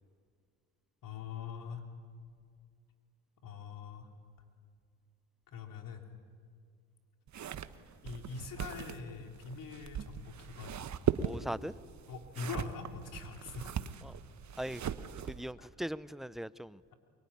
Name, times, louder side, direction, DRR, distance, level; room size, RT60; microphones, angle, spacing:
voice 1, 1.0-1.8 3.4-4.1 5.5-6.1 8.0-11.4 12.1-13.9 15.6-15.7, left 5 dB, 60° left, 4 dB, 3.4 m, -43 dB
sound 1, 7.3-15.5, right 8 dB, 50° right, 1.2 m, -39 dB
voice 2, 11.2-11.7 14.6-14.8 15.3-16.8, equal, ahead, 17 dB, 0.6 m, -39 dB
23.0 x 23.0 x 9.9 m, 2.1 s
supercardioid pair, 75°, 37 cm